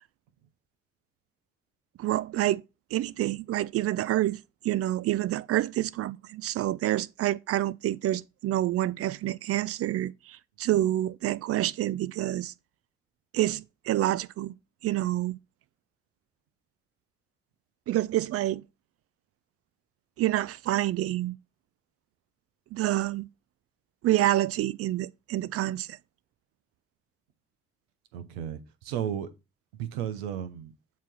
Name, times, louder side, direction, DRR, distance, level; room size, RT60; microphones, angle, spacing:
voice 1, 2.0-2.6 2.9-12.5 13.3-14.5 14.8-15.4 17.9-18.6 20.2-21.4 22.7-23.3 24.0-26.0, right 14 dB, 50° right, 0.4 m, -28 dB
voice 2, 28.1-29.3 29.7-30.7, right 9 dB, 85° right, 0.8 m, -34 dB
7.4 x 3.0 x 5.4 m
hypercardioid pair, 60°, 30 cm